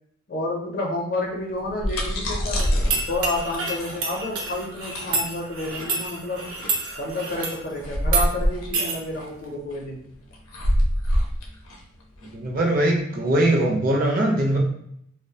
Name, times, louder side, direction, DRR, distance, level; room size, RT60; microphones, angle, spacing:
voice 1, 0.3-2.7 3.1-6.5 7.0-10.1, left 2 dB, 45° left, -1 dB, 0.5 m, -30 dB
sound 1, 1.5-12.9, equal, 90° left, 0.5 m, -26 dB
sound 2, 2.6-7.6 8.0-8.3 8.7-9.0, right 4 dB, 90° right, 0.6 m, -29 dB
voice 2, 12.3-14.6, right 1 dB, 40° right, 0 dB, 0.4 m, -21 dB
2.4 x 2.0 x 2.7 m, 0.70 s
head